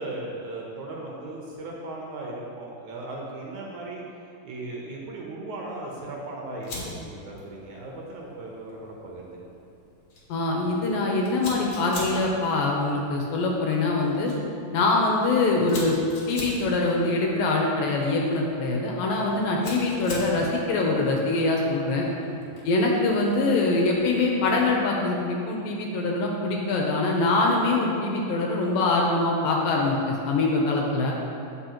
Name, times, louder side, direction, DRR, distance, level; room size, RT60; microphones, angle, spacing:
voice 1, 0.0-4.0 4.4-9.6 22.2-22.5, right 2 dB, 70° right, -3 dB, 1.9 m, -37 dB
Fire, 6.6-24.8, left 2 dB, 50° left, 2.0 m, -44 dB
voice 2, 10.3-14.3 14.7-16.0 16.3-22.1 22.7-31.1, left 2 dB, 75° left, -1 dB, 2.3 m, -24 dB
16.0 x 5.6 x 3.0 m, 2.5 s
omnidirectional pair, 4.6 m